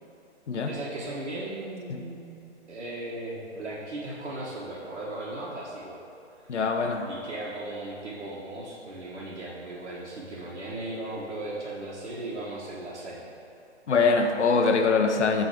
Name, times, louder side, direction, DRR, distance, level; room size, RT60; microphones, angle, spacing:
voice 1, 0.7-2.4 2.7-6.0 7.1-13.3, right 2 dB, 90° right, -7 dB, 1.6 m, -37 dB
voice 2, 6.5-7.1 13.9-15.5, left 4 dB, 85° left, 5 dB, 1.0 m, -23 dB
9.6 x 3.8 x 4.9 m, 2.7 s
hypercardioid pair, 165°, 34 cm